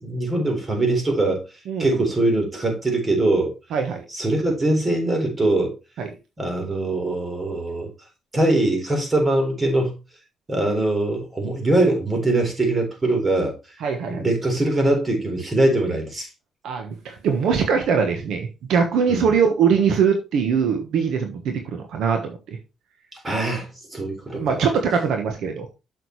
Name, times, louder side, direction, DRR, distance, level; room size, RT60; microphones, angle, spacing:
voice 1, 0.0-1.4 1.8-3.5 4.1-5.7 6.4-7.9 8.3-10.0 10.5-13.5 14.1-16.3 19.1-19.3 23.2-24.6, right 2 dB, 25° right, 4.0 m, -22 dB
voice 2, 1.7-2.0 3.7-4.0 6.0-6.1 13.8-14.2 16.6-22.6 24.3-25.7, right 6 dB, 80° right, 1.3 m, -22 dB
8.3 x 6.7 x 3.2 m
cardioid pair, 90°, 0 cm